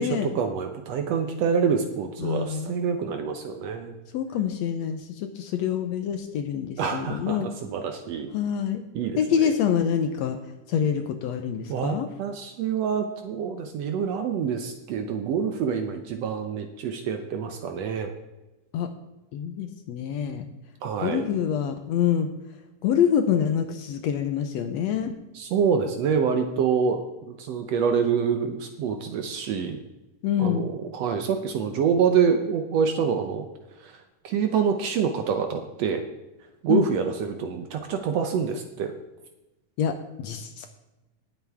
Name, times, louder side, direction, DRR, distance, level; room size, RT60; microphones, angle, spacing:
voice 1, 0.0-3.9 6.8-8.3 9.0-9.2 11.7-18.1 20.8-21.3 25.4-27.0 27.3-29.8 30.4-33.5 33.8-34.0 34.2-36.0 36.6-38.9, right 6 dB, 70° right, 6 dB, 1.7 m, -26 dB
voice 2, 2.2-2.7 4.1-7.5 8.3-8.8 9.2-10.4 10.7-12.1 18.7-18.9 19.3-20.5 21.0-22.3 22.8-25.1 30.2-30.7 36.7-36.8 39.8-40.7, left 8 dB, 70° left, 7 dB, 1.7 m, -26 dB
18.0 x 7.9 x 3.5 m, 1.0 s
omnidirectional pair, 3.6 m